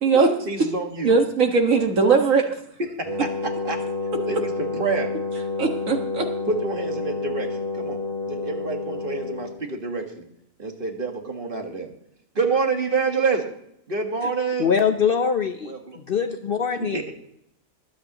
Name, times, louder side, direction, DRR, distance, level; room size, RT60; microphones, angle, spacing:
voice 1, 0.1-1.2 2.8-2.9 3.2-3.8 4.3-5.1 6.4-7.5 7.7-8.0 8.3-10.2 10.6-11.9 12.3-13.4 13.9-14.7 15.6-16.0 16.9-17.1, right 4 dB, 40° right, 3 dB, 1.8 m, -27 dB
voice 2, 1.0-2.6 5.6-6.3, right 4 dB, 70° right, 3 dB, 2.0 m, -19 dB
Wind instrument woodwind instrument, 3.0-9.6, left 3 dB, 20° right, 4.0 m, -29 dB
voice 3, 14.6-17.0, left 6 dB, 50° left, 7 dB, 0.7 m, -23 dB
23.5 x 8.7 x 2.9 m, 0.74 s
omnidirectional pair, 1.4 m